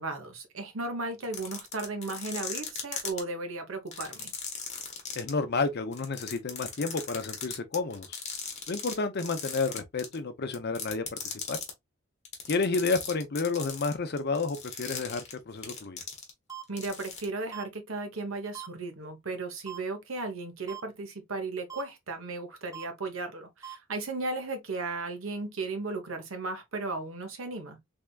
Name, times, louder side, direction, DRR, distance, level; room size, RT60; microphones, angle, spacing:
voice 1, 0.0-4.3 16.7-27.8, right 3 dB, 80° right, 1.1 m, -35 dB
sound 1, 1.2-3.2 3.9-5.3 5.9-8.9 9.2-10.2 10.5-11.7 12.2-16.5 16.8-17.2, left 7 dB, 35° left, 1.1 m, -37 dB
voice 2, 5.1-8.2 8.7-11.6 12.5-16.0, left 4 dB, 50° left, 0.6 m, -31 dB
sound 2, 16.5-16.6 17.5-17.6 18.5-18.7 19.7-19.8 20.7-20.8 21.7-21.8 22.7-22.8 23.6-23.7, right 11 dB, 15° right, 0.6 m, -40 dB
3.5 x 3.4 x 2.3 m
head